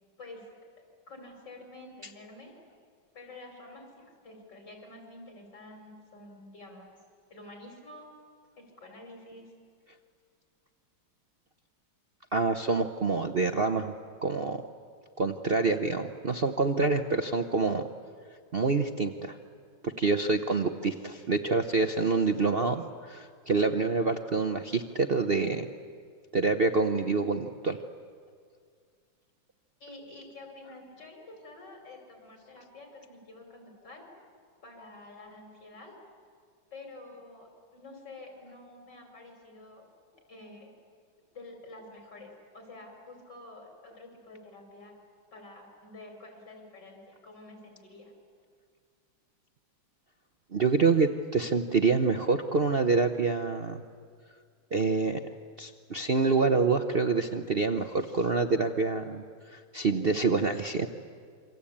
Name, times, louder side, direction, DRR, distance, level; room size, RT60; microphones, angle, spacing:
voice 1, 1.1-2.5 3.1-3.9 4.2-7.0 7.3-8.1 8.6-9.5 29.8-34.0 34.6-35.9 36.7-39.8 40.3-40.7 41.3-45.0 45.3-48.1, left 2 dB, 50° left, 2 dB, 6.1 m, -48 dB
voice 2, 12.3-13.9 14.2-14.6 15.2-17.9 18.5-19.4 19.8-25.7 26.3-27.8 50.5-53.8 54.7-55.2 55.6-60.9, right 4 dB, 55° right, 7 dB, 0.6 m, -27 dB
27.5 x 24.5 x 8.7 m, 2.1 s
omnidirectional pair, 2.3 m